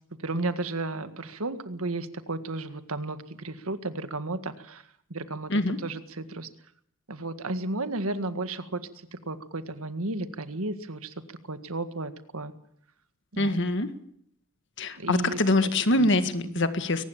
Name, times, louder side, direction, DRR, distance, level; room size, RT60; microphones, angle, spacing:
voice 1, 0.2-4.8 5.1-5.5 5.8-6.5 7.1-8.8 9.3-11.1 11.5-12.5 13.3-13.6 15.0-15.7 16.0-16.1 16.5-16.6, right 2 dB, 75° right, 10 dB, 1.8 m, -33 dB
voice 2, 13.4-13.9 14.8-17.0, left 2 dB, 55° left, 10 dB, 1.9 m, -24 dB
23.0 x 19.0 x 7.2 m, 0.66 s
head